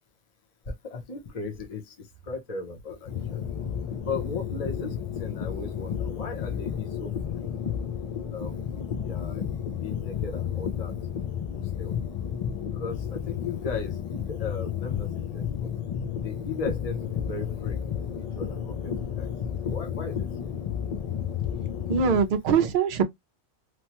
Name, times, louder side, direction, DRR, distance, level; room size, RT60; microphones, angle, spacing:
voice 1, 0.7-3.5 4.0-7.5 8.3-9.4 9.7-10.9 11.2-12.0 12.7-15.7 16.2-19.3 19.6-20.5, left 4 dB, 35° left, 0.8 m, -37 dB
sound 1, 3.1-22.2, left 8 dB, 65° left, 0.3 m, -32 dB
voice 2, 21.9-23.0, right 6 dB, 55° right, 0.7 m, -22 dB
3.0 x 2.2 x 2.9 m
omnidirectional pair, 1.2 m